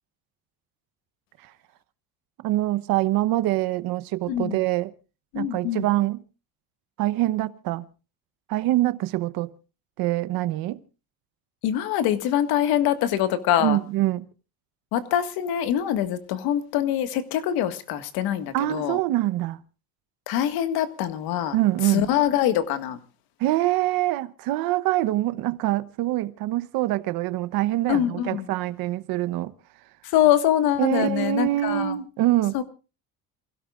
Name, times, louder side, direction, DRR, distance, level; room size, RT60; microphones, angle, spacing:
voice 1, 2.4-4.9 5.3-6.2 7.0-7.9 8.5-9.5 10.0-10.8 13.6-14.3 18.5-19.6 21.5-22.1 23.4-29.5 30.8-32.6, right 15 dB, 70° right, 1.0 m, -24 dB
voice 2, 4.3-4.6 5.3-5.9 11.6-13.8 14.9-19.0 20.3-21.6 21.9-23.0 27.9-28.5 30.0-32.0 32.5-32.6, left 11 dB, 75° left, 1.8 m, -24 dB
28.0 x 17.0 x 2.4 m
cardioid pair, 150°, 37 cm